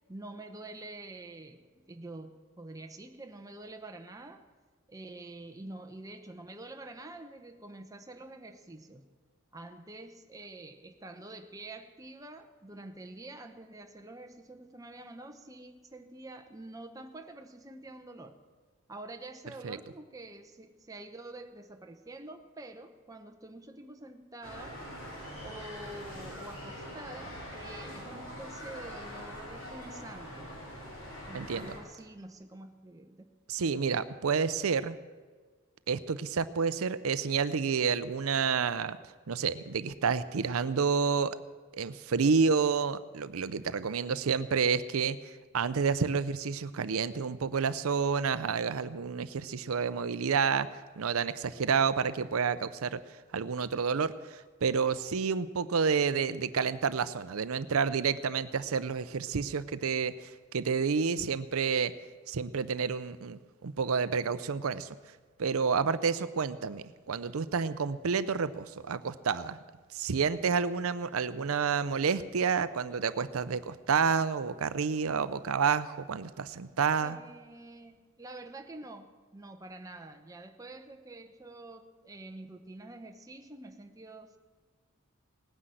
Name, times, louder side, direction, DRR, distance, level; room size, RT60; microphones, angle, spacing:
voice 1, 0.1-4.5 4.9-9.0 9.5-18.4 18.9-24.8 25.4-30.5 31.3-33.3 77.0-84.4, right 2 dB, 15° right, 5 dB, 0.9 m, -47 dB
sound 1, 24.4-31.8, equal, 60° left, 5.3 m, -43 dB
voice 2, 31.3-31.7 33.5-35.0 35.9-39.0 39.3-41.4 41.7-50.7 51.0-53.0 53.3-61.9 62.3-64.9 65.4-69.6 69.9-77.2, right 5 dB, 75° right, 14 dB, 0.6 m, -29 dB
18.0 x 9.9 x 7.7 m, 1.5 s
head